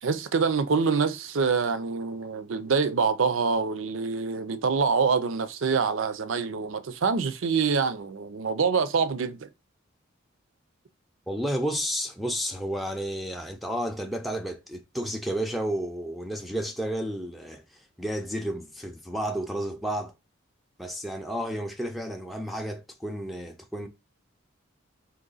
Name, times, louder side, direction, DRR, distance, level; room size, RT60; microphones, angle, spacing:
voice 1, 0.0-9.5, right 5 dB, 70° right, 0.5 m, -25 dB
voice 2, 11.3-20.1 20.8-23.9, right 1 dB, ahead, 0.4 m, -32 dB
3.8 x 3.0 x 3.9 m
head